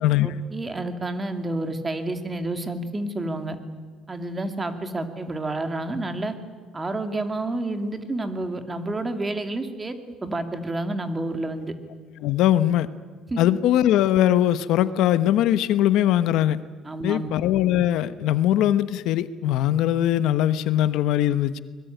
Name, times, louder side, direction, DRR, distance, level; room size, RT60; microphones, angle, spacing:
voice 1, 0.2-3.6 4.1-6.3 6.7-11.7 13.3-13.4 16.8-17.3, right 2 dB, 20° right, 7 dB, 2.5 m, -29 dB
voice 2, 12.2-12.9 13.4-16.6 17.0-21.6, left 12 dB, 80° left, 13 dB, 1.0 m, -21 dB
25.0 x 21.0 x 9.3 m, 1.5 s
cardioid pair, 125°, 0 cm